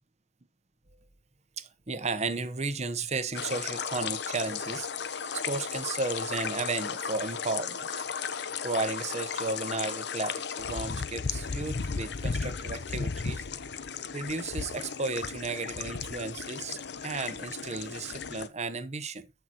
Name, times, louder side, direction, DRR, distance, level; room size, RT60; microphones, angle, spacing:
voice 1, 1.6-8.0 8.6-13.4 14.1-19.3, right 3 dB, 35° right, 0.9 m, -34 dB
sound 1, 3.3-18.5, left 5 dB, 65° left, 0.8 m, -35 dB
14.0 x 5.8 x 2.9 m
head